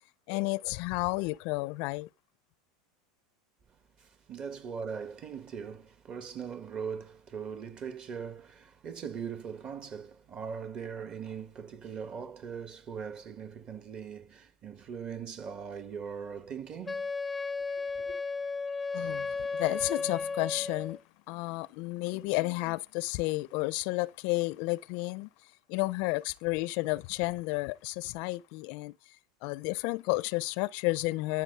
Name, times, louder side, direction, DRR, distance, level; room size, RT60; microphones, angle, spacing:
voice 1, 0.3-2.1 18.9-21.0 21.3-25.3 25.7-28.9 29.4-31.4, left 22 dB, 60° left, 0.5 m, -31 dB
voice 2, 4.0-17.1 18.0-18.1, right 7 dB, 35° right, 1.9 m, -40 dB
Wind instrument woodwind instrument, 16.9-21.0, left 4 dB, 10° left, 0.6 m, -34 dB
13.5 x 6.0 x 5.4 m
hypercardioid pair, 105°, 3 cm